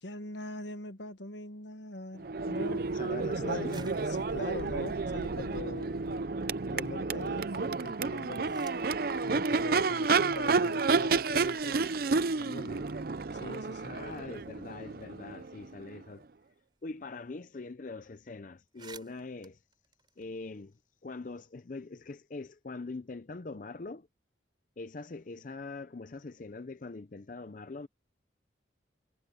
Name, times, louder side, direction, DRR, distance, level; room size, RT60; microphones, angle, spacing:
voice 1, 0.0-6.0 6.7-8.7 9.2-11.8 12.4-12.9 13.3-14.0, left 2 dB, 70° left, 1.4 m, -42 dB
Crowd / Race car auto racing / Accelerating revving vroom, 2.2-16.0, right 4 dB, 50° right, 0.5 m, -31 dB
voice 2, 2.9-3.7 13.8-16.3 16.8-19.6 20.2-20.7 21.0-24.1 24.8-27.9, left 3 dB, 45° left, 0.5 m, -42 dB
sound 1, 3.7-6.1 6.5-7.2 7.9-9.0 10.1-10.2 10.9-11.0 11.3-13.6 14.0-14.1 14.4-17.0 17.2-17.4 17.6-17.9 18.3-18.4 18.6-20.8, right 5 dB, 25° right, 4.5 m, -56 dB
head